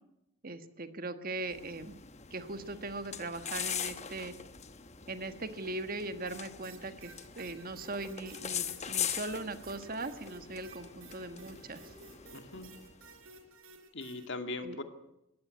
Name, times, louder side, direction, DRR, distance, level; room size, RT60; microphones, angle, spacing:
voice 1, 0.4-2.0 2.3-4.3 5.1-11.9 14.6-14.8, right 2 dB, 40° right, 9 dB, 1.4 m, -40 dB
sound 1, 1.4-13.2, left 8 dB, 30° left, 1.0 m, -41 dB
sound 2, 6.3-14.3, right 3 dB, 70° right, 4.2 m, -55 dB
voice 2, 12.3-12.7 13.9-14.8, left 2 dB, 55° left, 7 dB, 2.3 m, -40 dB
21.0 x 17.0 x 8.3 m, 0.86 s
head